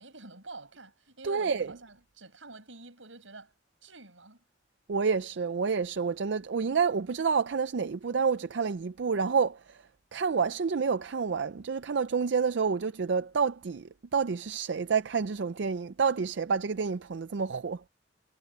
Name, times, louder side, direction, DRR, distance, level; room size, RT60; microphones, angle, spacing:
voice 1, 0.0-3.5 3.8-4.4, right 3 dB, 90° right, 6.6 m, -48 dB
voice 2, 1.2-1.7 4.9-9.8 10.1-17.8, right 5 dB, 65° right, 0.5 m, -29 dB
head